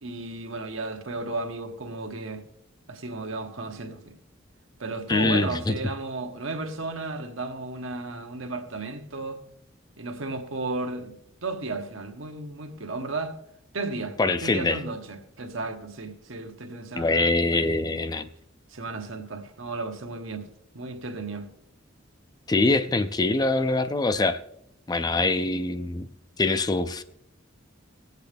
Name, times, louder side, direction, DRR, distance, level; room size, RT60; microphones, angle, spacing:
voice 1, 0.0-2.4 2.9-4.2 4.8-9.4 10.0-11.1 11.4-13.3 13.7-17.7 18.7-20.5 20.7-21.5, right 2 dB, 80° right, 1.2 m, -34 dB
voice 2, 5.1-5.7 14.2-14.8 16.9-18.3 22.5-24.4 24.9-26.1 26.4-27.0, left 2 dB, 20° left, 0.4 m, -24 dB
19.0 x 8.1 x 3.4 m
head